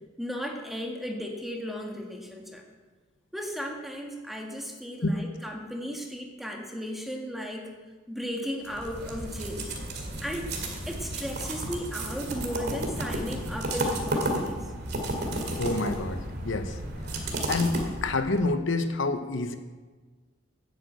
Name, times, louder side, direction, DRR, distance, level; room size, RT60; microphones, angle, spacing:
voice 1, 0.2-2.6 3.3-7.7 8.1-9.7 10.2-10.5 10.9-14.7, equal, ahead, 1 dB, 1.7 m, -35 dB
sound 1, 8.7-18.4, right 1 dB, 55° right, 2.4 m, -32 dB
voice 2, 15.5-16.8 17.1-19.6, left 2 dB, 70° left, 8 dB, 0.9 m, -28 dB
10.5 x 9.2 x 8.1 m, 1.4 s
head